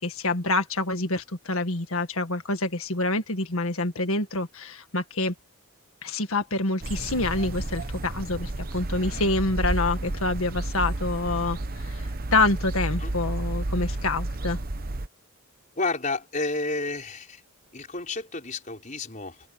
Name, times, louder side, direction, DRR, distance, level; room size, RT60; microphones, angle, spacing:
voice 1, 0.0-5.3 6.0-12.0 12.3-14.6, left 2 dB, 70° left, 1.8 m, -27 dB
sound 1, 6.8-15.1, right 2 dB, 40° right, 1.0 m, -31 dB
voice 2, 15.8-17.4 17.7-19.4, left 3 dB, 35° left, 5.1 m, -31 dB
open air
head